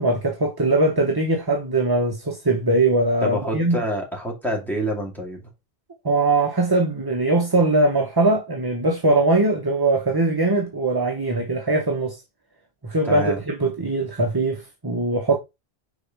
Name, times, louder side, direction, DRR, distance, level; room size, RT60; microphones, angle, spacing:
voice 1, 0.0-3.8 6.0-12.2 12.8-15.4, right 2 dB, 25° right, 0.7 m, -21 dB
voice 2, 3.2-5.5 13.0-13.4, equal, ahead, 2.3 m, -27 dB
5.1 x 4.3 x 5.1 m
omnidirectional pair, 1.1 m